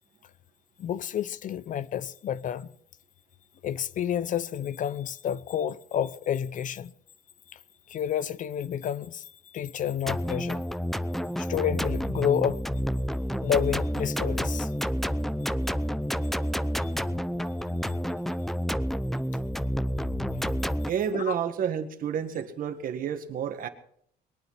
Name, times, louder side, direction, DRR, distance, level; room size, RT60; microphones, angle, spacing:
voice 1, 0.8-2.7 3.6-6.9 7.9-9.2 9.5-10.6 11.4-12.6 13.4-14.7 16.8-16.9 21.1-21.3, left 9 dB, 50° left, 0.6 m, -30 dB
sound 1, 10.1-20.9, equal, ahead, 0.6 m, -29 dB
sound 2, 13.1-19.9, right 11 dB, 20° right, 2.8 m, -62 dB
voice 2, 20.9-23.7, right 8 dB, 55° right, 1.9 m, -30 dB
22.0 x 9.1 x 5.8 m
cardioid pair, 110°, 17 cm